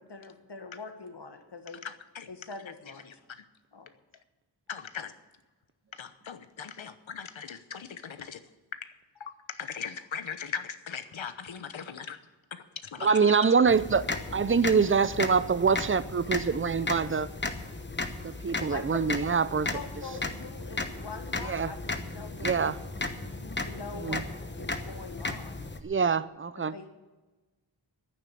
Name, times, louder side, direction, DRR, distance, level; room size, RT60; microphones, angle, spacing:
voice 1, 0.0-1.8 2.3-3.0 3.7-3.9 18.7-19.0 19.7-21.8 22.1-22.7 23.4-24.2 24.5-25.7 26.5-26.9, left 4 dB, 60° left, 6 dB, 1.8 m, -43 dB
voice 2, 1.8-2.3 4.7-5.1 5.9-8.4 8.8-8.9 9.2-12.2 12.5-12.6 12.9-13.5, left 7 dB, 80° left, 10 dB, 1.0 m, -39 dB
voice 3, 13.0-17.3 18.2-19.8 21.5-21.7 22.4-22.8 24.0-24.2 25.8-26.7, right 5 dB, 25° right, 16 dB, 0.6 m, -25 dB
sound 1, 13.7-25.8, left 3 dB, 25° left, 1.0 m, -35 dB
10.5 x 9.5 x 8.5 m, 1.2 s
wide cardioid pair, 95°, 46 cm